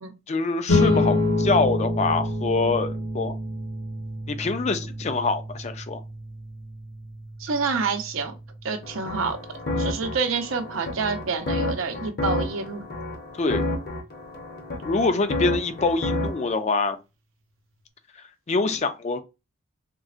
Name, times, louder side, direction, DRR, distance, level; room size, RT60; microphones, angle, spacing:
voice 1, 0.3-3.4 4.3-6.0 13.4-13.6 14.8-17.0 18.5-19.2, left 3 dB, 35° left, 0.4 m, -25 dB
sound 1, 0.7-11.4, left 2 dB, 80° left, 1.1 m, -28 dB
voice 2, 7.4-8.4 8.6-9.4 9.8-12.8, right 4 dB, 75° right, 0.6 m, -27 dB
sound 2, 8.8-16.5, left 1 dB, 50° left, 0.7 m, -30 dB
3.8 x 2.1 x 2.4 m
head